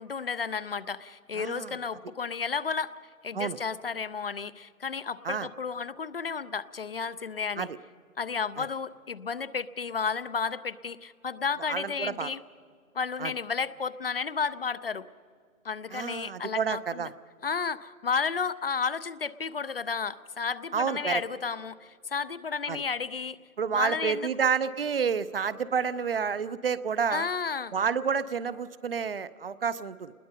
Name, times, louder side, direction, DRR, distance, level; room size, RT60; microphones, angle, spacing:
voice 1, 0.0-2.9 3.2-7.7 8.2-12.4 12.9-15.1 15.6-17.1 17.4-23.4 23.7-24.3 27.1-27.7, left 5 dB, 45° left, 15 dB, 0.5 m, -32 dB
voice 2, 1.3-1.8 3.3-3.6 5.2-5.5 7.6-7.7 8.6-8.7 11.7-12.3 13.2-13.3 15.9-17.1 20.7-21.2 22.7-22.8 23.6-27.3 27.7-30.1, right 6 dB, 45° right, 15 dB, 0.6 m, -29 dB
27.5 x 20.5 x 5.5 m, 2.1 s
figure-of-eight pair, 150°, 42 cm